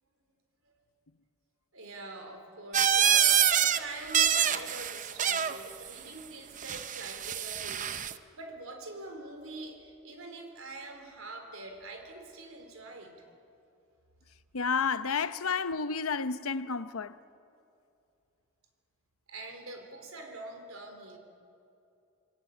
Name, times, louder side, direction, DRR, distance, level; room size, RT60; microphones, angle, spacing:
voice 1, 1.7-13.2 19.3-21.2, right 2 dB, 70° right, 3.9 m, -44 dB
sound 1, 2.7-3.8 4.1-5.6 6.6-8.1, right 9 dB, 35° right, 0.7 m, -26 dB
voice 2, 14.5-17.2, left 5 dB, 80° left, 0.8 m, -31 dB
28.0 x 19.5 x 8.4 m
head